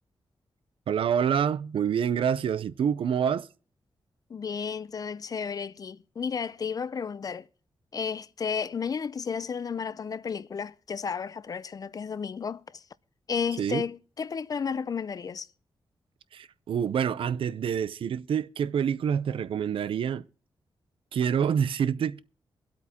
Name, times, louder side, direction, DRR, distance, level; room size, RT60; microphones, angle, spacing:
voice 1, 0.9-3.5 13.6-13.8 16.3-20.3 21.1-22.2, right 8 dB, 80° right, 0.5 m, -27 dB
voice 2, 4.3-7.5 7.9-12.8 13.3-15.5, left 6 dB, 45° left, 0.5 m, -33 dB
24.0 x 8.3 x 2.9 m
wide cardioid pair, 125°, 9 cm